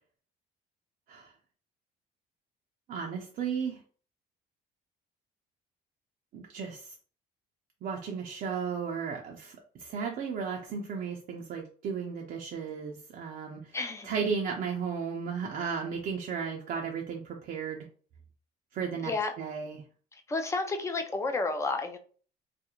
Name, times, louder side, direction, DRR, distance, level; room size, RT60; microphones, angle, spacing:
voice 1, 2.9-3.8 6.3-6.9 7.8-13.8 14.0-17.9 18.7-19.8, right 6 dB, 55° right, 0 dB, 0.5 m, -35 dB
voice 2, 13.7-14.1 19.0-19.3 20.1-22.0, left 3 dB, 15° left, 5 dB, 0.4 m, -31 dB
2.4 x 2.1 x 2.9 m, 0.42 s
cardioid pair, 110°, 17 cm